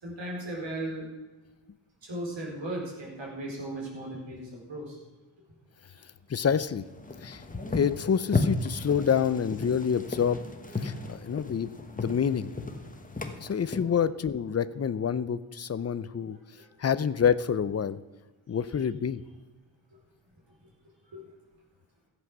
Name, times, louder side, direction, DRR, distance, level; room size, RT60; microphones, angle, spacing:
voice 1, 0.0-1.1 2.0-5.0 16.5-16.7 21.1-21.2, right 1 dB, 65° right, -2 dB, 4.2 m, -36 dB
voice 2, 6.3-6.8 7.2-10.4 10.8-11.7 12.0-12.5 13.4-16.4 16.8-18.0 18.5-19.2, left 7 dB, 35° left, 15 dB, 0.5 m, -27 dB
sound 1, 6.6-13.8, left 3 dB, 15° left, 1.1 m, -34 dB
14.5 x 8.1 x 6.0 m, 1.2 s
wide cardioid pair, 135°, 49 cm